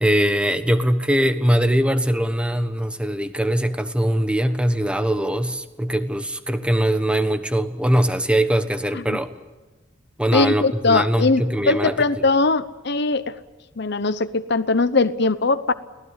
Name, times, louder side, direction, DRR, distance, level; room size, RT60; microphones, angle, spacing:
voice 1, 0.0-9.3 10.2-12.0, right 1 dB, 5° right, 9 dB, 1.3 m, -21 dB
voice 2, 10.3-13.4 13.8-15.7, left 3 dB, 60° left, 12 dB, 0.9 m, -20 dB
29.5 x 19.0 x 8.2 m, 1.2 s
head